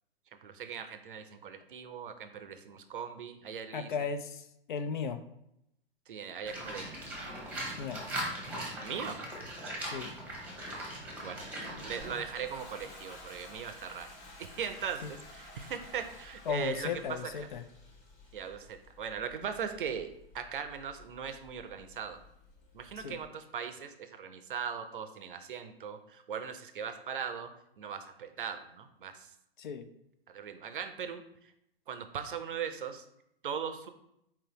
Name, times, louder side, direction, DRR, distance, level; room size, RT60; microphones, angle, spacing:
voice 1, 0.4-3.9 6.1-6.9 8.8-9.3 11.2-11.5 11.8-14.1 14.4-17.5 18.3-22.2 22.7-27.5 27.8-29.3 30.3-31.5 31.9-33.1 33.4-33.9, right 7 dB, 60° right, 9 dB, 0.5 m, -39 dB
voice 2, 3.7-5.2 7.8-8.0 9.8-10.1 16.5-17.6 23.0-23.2 29.6-29.9, left 6 dB, 55° left, 9 dB, 0.5 m, -35 dB
Livestock farm animals working animals, 6.4-12.0, right 1 dB, 5° right, 1.0 m, -39 dB
Toilet flush, 11.7-23.3, left 2 dB, 30° left, 1.1 m, -52 dB
4.4 x 3.9 x 2.9 m, 0.78 s
figure-of-eight pair, 105°, 30 cm